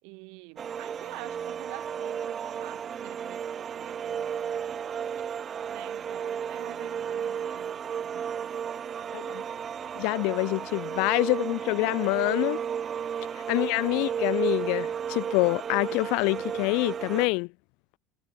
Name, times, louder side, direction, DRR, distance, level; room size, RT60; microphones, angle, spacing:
voice 1, 0.0-4.3 5.7-9.1 9.4-9.5 13.5-13.6, right 34 dB, 65° right, 5.1 m, -47 dB
sound 1, 0.6-17.3, right 8 dB, 30° right, 1.6 m, -33 dB
voice 2, 10.0-12.6 13.5-17.5, left 31 dB, 65° left, 0.8 m, -26 dB
supercardioid pair, 140°, 0 cm